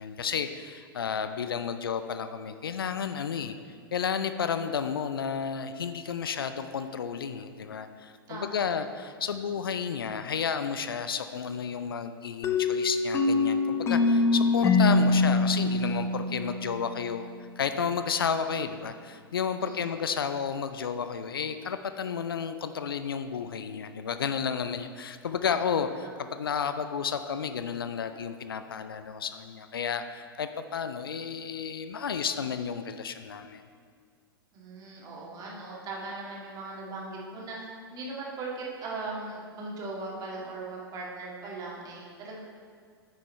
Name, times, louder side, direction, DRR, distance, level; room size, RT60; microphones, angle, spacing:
voice 1, 0.0-3.6 3.9-17.3 17.6-33.6, left 6 dB, 65° left, 9 dB, 0.5 m, -32 dB
voice 2, 8.3-8.7 19.6-19.8 34.5-42.4, right 3 dB, 30° right, -4 dB, 2.1 m, -39 dB
sound 1, 12.4-17.1, left 3 dB, 20° left, 0.6 m, -24 dB
9.3 x 6.4 x 4.3 m, 2.1 s
figure-of-eight pair, 100°, 13 cm